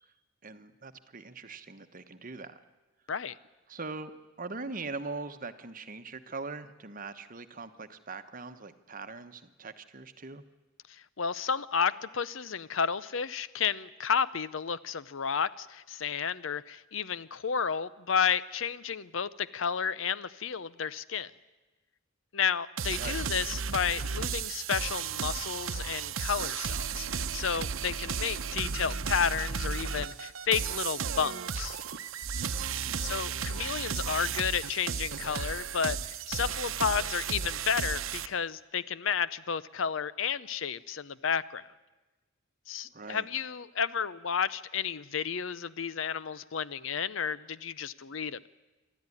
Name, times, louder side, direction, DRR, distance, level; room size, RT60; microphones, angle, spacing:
voice 1, 0.4-2.6 3.7-4.1 4.4-10.4 23.0-23.2 32.9-33.0 42.9-43.3, right 3 dB, 40° right, 10 dB, 1.1 m, -41 dB
voice 2, 11.2-21.3 22.3-31.8 33.0-41.6 42.7-48.5, left 6 dB, 75° left, 17 dB, 0.7 m, -32 dB
sound 1, 22.8-38.3, right 6 dB, 80° right, 0.8 m, -34 dB
27.0 x 12.5 x 9.8 m, 1.1 s
head